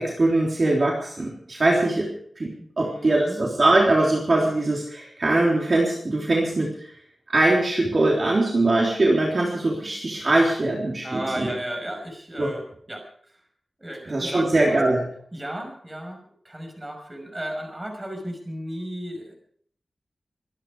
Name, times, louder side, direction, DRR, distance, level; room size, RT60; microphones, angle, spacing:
voice 1, 0.0-2.1 2.4-6.9 7.3-11.5 12.4-12.5 14.1-15.0, right 2 dB, 45° right, -2 dB, 3.5 m, -22 dB
voice 2, 2.6-3.4 11.0-12.6 12.9-13.4 13.8-14.8 15.3-19.3, right 1 dB, 20° right, 3 dB, 5.7 m, -34 dB
25.0 x 10.5 x 4.9 m, 0.62 s
wide cardioid pair, 115°, 0 cm